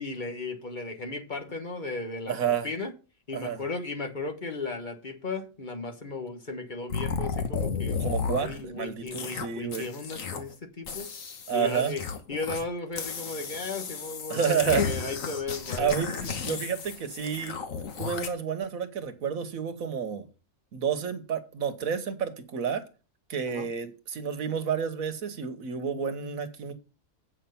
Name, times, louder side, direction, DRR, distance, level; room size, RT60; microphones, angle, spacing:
voice 1, 0.0-2.3 2.6-2.9 3.3-8.0 8.4-11.1 11.5-12.0 12.3-15.9 23.5-23.7, left 3 dB, 35° left, 1.5 m, -35 dB
voice 2, 2.3-2.7 3.3-3.6 7.9-9.9 11.5-11.9 14.3-14.8 15.8-17.6 18.0-20.3 20.7-22.8 23.3-26.7, right 7 dB, 70° right, 1.6 m, -30 dB
sound 1, 6.9-8.6 9.1-9.5 9.7-10.5 10.9-12.6 12.9-18.3, left 5 dB, 65° left, 1.6 m, -33 dB
8.3 x 5.8 x 7.0 m
omnidirectional pair, 1.5 m